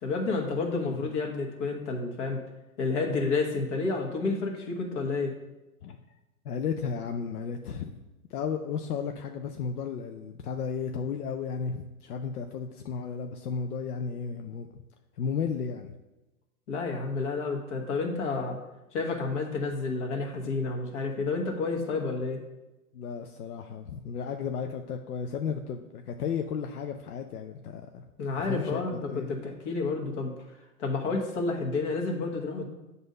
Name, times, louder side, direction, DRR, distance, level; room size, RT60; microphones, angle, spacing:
voice 1, 0.0-2.4 2.8-5.4 16.7-18.6 18.9-22.4 28.2-30.3 30.8-32.6, left 3 dB, 55° left, 2 dB, 1.4 m, -30 dB
voice 2, 6.4-8.0 8.3-14.8 15.2-16.0 22.9-28.0 28.4-28.8 29.1-29.4, left 6 dB, 85° left, 5 dB, 0.6 m, -34 dB
7.7 x 2.7 x 5.3 m, 1.0 s
hypercardioid pair, 130°, 44 cm